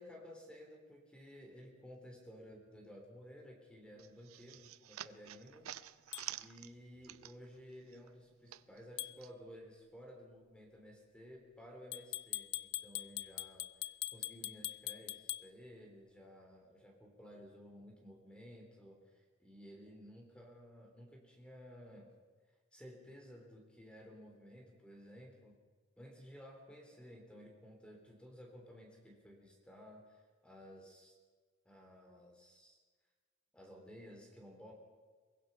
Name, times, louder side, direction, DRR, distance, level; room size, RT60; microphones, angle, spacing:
voice 1, 0.0-5.7 6.4-22.1 22.7-25.6 26.0-31.2 31.6-32.8 33.5-34.7, equal, 5° left, 1 dB, 3.4 m, -55 dB
sound 1, 4.0-7.6 7.9-9.3, right 12 dB, 75° right, 0.6 m, -49 dB
sound 2, 6.1-6.3 9.0-9.2 11.9-15.5, left 16 dB, 55° left, 0.5 m, -42 dB
23.0 x 20.5 x 5.6 m, 1.5 s
head